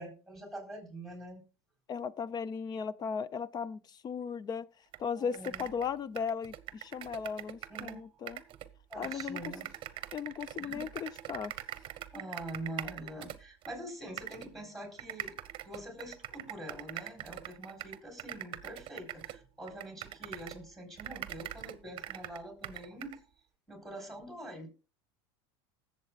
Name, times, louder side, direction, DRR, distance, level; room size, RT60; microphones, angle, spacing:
voice 1, 0.0-1.4 5.1-5.7 7.7-8.0 8.9-9.7 10.6-10.9 12.1-15.4 15.6-23.2 23.7-24.7, right 1 dB, ahead, 4.1 m, -45 dB
voice 2, 1.9-4.7 5.0-8.4 9.0-9.5 10.1-11.5, left 6 dB, 30° left, 0.5 m, -37 dB
sound 1, 4.9-5.0 5.3-8.0 8.3-13.7 14.2-14.5 15.0-20.7 21.0-23.2, right 12 dB, 40° right, 0.9 m, -43 dB
19.5 x 7.3 x 2.4 m
supercardioid pair, 115°, 13 cm